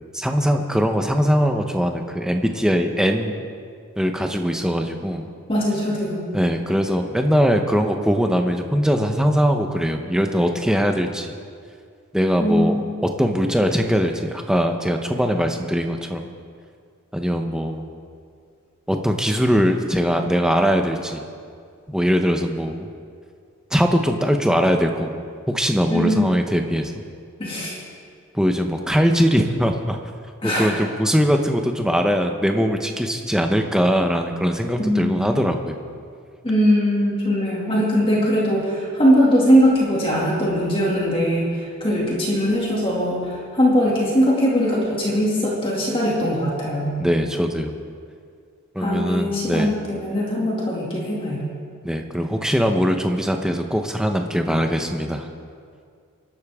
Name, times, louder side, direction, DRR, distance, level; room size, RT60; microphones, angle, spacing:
voice 1, 0.1-3.4 4.0-5.3 6.3-11.3 12.1-12.8 13.2-16.3 17.1-17.9 18.9-21.2 21.9-22.9 23.7-25.2 25.5-26.9 28.3-30.0 30.4-35.8 47.0-47.7 48.7-49.8 51.8-55.3, equal, 5° right, 4 dB, 0.8 m, -21 dB
voice 2, 5.5-6.2 12.4-12.9 25.9-26.2 27.4-27.8 30.4-30.7 34.8-35.4 36.4-47.0 48.8-51.4, equal, 25° left, -4 dB, 2.4 m, -20 dB
25.5 x 12.0 x 3.6 m, 2.2 s
head